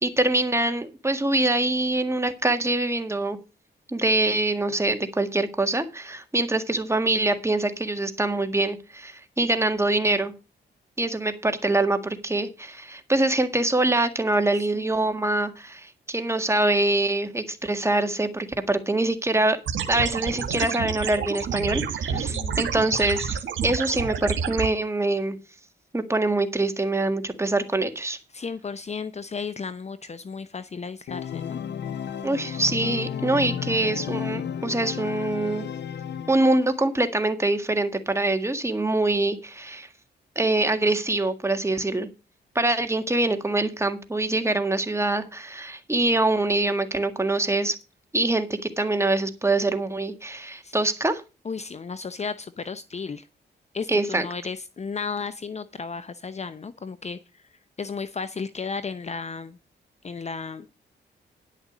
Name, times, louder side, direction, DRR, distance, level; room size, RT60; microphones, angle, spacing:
voice 1, 0.0-3.4 3.9-10.3 11.0-19.6 19.9-25.4 25.9-28.2 32.2-35.7 36.3-39.9 40.4-42.1 42.6-47.8 48.1-51.2 53.9-54.3, right 2 dB, 15° right, 7 dB, 1.8 m, -24 dB
voice 2, 14.7-15.1 22.1-22.6 28.3-31.6 50.6-50.7 51.4-53.2 53.7-57.2 57.8-59.6 60.0-60.8, left 5 dB, 35° left, 13 dB, 0.7 m, -34 dB
sound 1, 19.7-24.7, right 7 dB, 80° right, 1.7 m, -29 dB
Organ, 31.1-36.8, left 8 dB, 65° left, 0.9 m, -33 dB
10.5 x 6.6 x 6.1 m, 0.30 s
cardioid pair, 85°, 19 cm